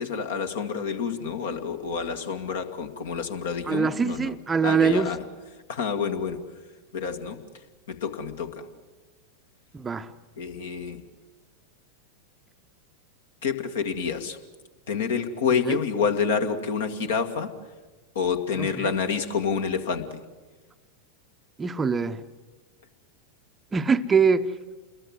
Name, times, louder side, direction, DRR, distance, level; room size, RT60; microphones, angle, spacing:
voice 1, 0.0-4.3 4.6-5.2 5.7-6.4 6.9-7.4 7.9-8.7 10.4-11.0 13.4-14.4 14.9-17.5 18.2-20.2, left 6 dB, 60° left, 7 dB, 2.0 m, -28 dB
voice 2, 3.7-5.1 9.7-10.1 15.6-15.8 18.6-18.9 21.6-22.2 23.7-24.5, right 5 dB, 15° right, 10 dB, 0.8 m, -23 dB
28.5 x 21.5 x 7.9 m, 1.3 s
figure-of-eight pair, 90°, 0 cm